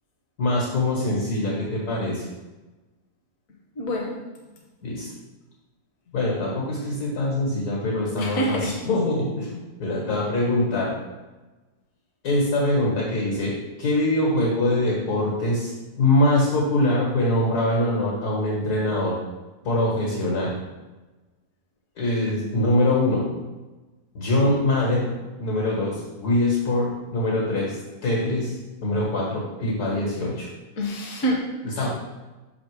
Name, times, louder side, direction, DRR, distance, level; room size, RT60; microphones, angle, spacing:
voice 1, 0.4-2.2 4.8-5.1 6.1-10.9 12.2-13.5 13.8-15.7 16.0-19.1 19.6-20.6 22.0-23.2 24.1-25.1 25.4-28.5 28.8-30.5 31.6-31.9, left 1 dB, 85° left, -4 dB, 2.1 m, -23 dB
voice 2, 3.8-4.1 8.2-8.8 30.8-31.5, equal, 65° left, -1 dB, 1.3 m, -26 dB
5.9 x 3.9 x 4.8 m, 1.2 s
omnidirectional pair, 1.6 m